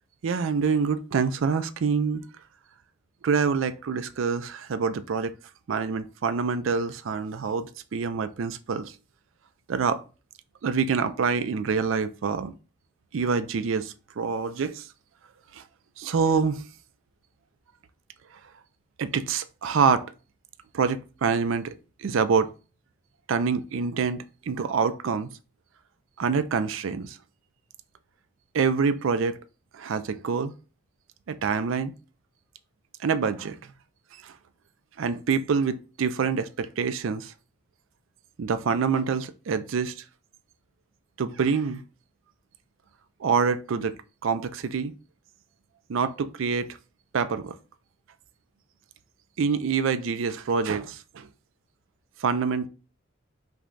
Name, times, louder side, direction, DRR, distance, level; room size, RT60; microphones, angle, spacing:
voice 1, 0.2-2.2 3.2-5.3 5.7-8.9 9.7-10.0 10.6-12.5 13.1-14.8 15.5-15.6 16.0-16.6 19.0-20.1 20.7-21.7 22.0-22.5 23.3-25.3 26.2-27.2 28.5-29.3 29.7-30.5 31.3-31.9 33.0-33.6 34.2-34.3 35.0-37.3 38.4-39.9 41.2-41.8 43.2-44.0 44.2-44.9 45.9-46.7 47.1-47.5 49.4-51.3 52.2-52.7, right 5 dB, 75° right, 0.4 m, -26 dB
5.9 x 2.2 x 3.9 m
head